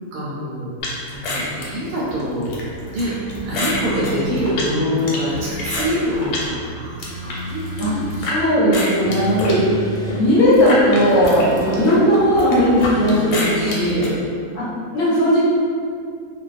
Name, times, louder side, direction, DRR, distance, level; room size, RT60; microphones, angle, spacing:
voice 1, 0.1-0.7 1.1-2.7 2.9-3.1 3.4-8.2 13.6-14.1, equal, 85° right, -7 dB, 1.1 m, -25 dB
sound 1, 0.8-6.5 6.9-8.4 8.7-14.1, left 2 dB, 85° left, 1.1 m, -28 dB
Bowed string instrument, 2.7-6.3, right 1 dB, 20° left, 0.6 m, -32 dB
sound 2, 5.3-6.3 7.1-8.2 9.0-10.2 10.9-12.0 12.8-13.9, right 1 dB, 70° right, 0.8 m, -32 dB
voice 2, 8.2-14.1 14.5-14.7 14.9-15.4, equal, 70° left, -8 dB, 0.9 m, -17 dB
2.5 x 2.2 x 2.4 m, 2.3 s
omnidirectional pair, 1.6 m